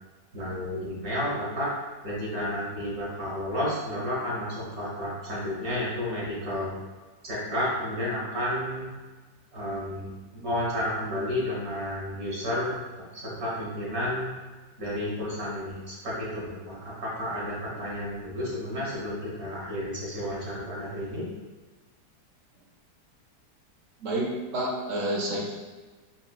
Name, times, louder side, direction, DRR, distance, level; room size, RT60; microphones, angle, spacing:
voice 1, 0.3-1.7 2.0-6.7 7.2-8.9 9.5-12.8 13.1-14.3 14.8-21.2, left 1 dB, 45° right, -6 dB, 1.5 m, -31 dB
voice 2, 24.0-25.6, right 1 dB, 60° right, -2 dB, 0.9 m, -29 dB
5.6 x 2.9 x 2.3 m, 1.3 s
omnidirectional pair, 1.8 m